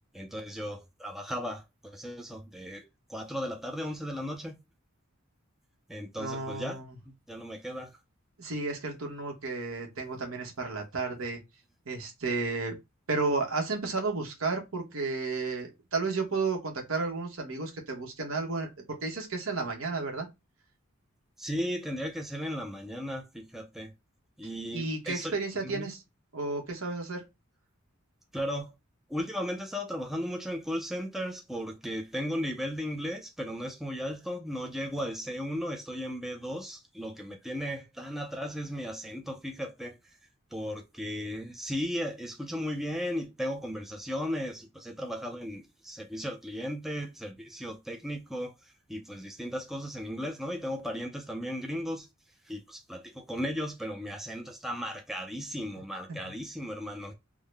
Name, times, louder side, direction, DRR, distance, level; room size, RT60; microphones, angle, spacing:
voice 1, 0.1-4.6 5.9-6.8 7.0-7.9 21.4-23.9 24.4-25.4 25.6-25.9 28.3-28.7 29.1-39.9 40.5-52.1 52.4-57.1, equal, ahead, 0.4 m, -36 dB
voice 2, 6.1-6.9 8.4-11.4 11.9-12.8 13.1-18.7 19.0-20.3 24.7-26.0 26.3-27.2, right 3 dB, 70° right, 1.1 m, -32 dB
3.6 x 2.1 x 3.3 m
head